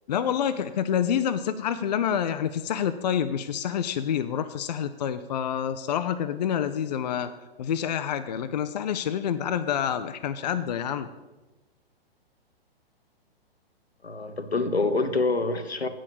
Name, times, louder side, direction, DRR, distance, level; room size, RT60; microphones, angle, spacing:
voice 1, 0.1-7.3 7.6-11.1, left 9 dB, 45° left, 10 dB, 0.5 m, -27 dB
voice 2, 14.0-15.9, left 3 dB, 85° left, 9 dB, 0.9 m, -26 dB
8.3 x 6.2 x 7.0 m, 1.1 s
figure-of-eight pair, 115°, 31 cm